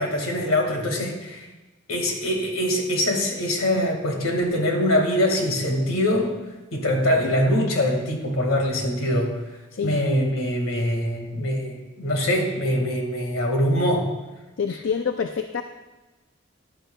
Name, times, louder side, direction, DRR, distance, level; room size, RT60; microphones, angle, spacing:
voice 1, 0.0-1.5 1.9-6.4 6.7-9.4 9.8-14.1, left 1 dB, 85° left, 2 dB, 1.8 m, -23 dB
voice 2, 9.7-10.0 14.6-15.6, left 6 dB, 65° left, 7 dB, 0.4 m, -26 dB
14.5 x 10.0 x 2.3 m, 1.1 s
head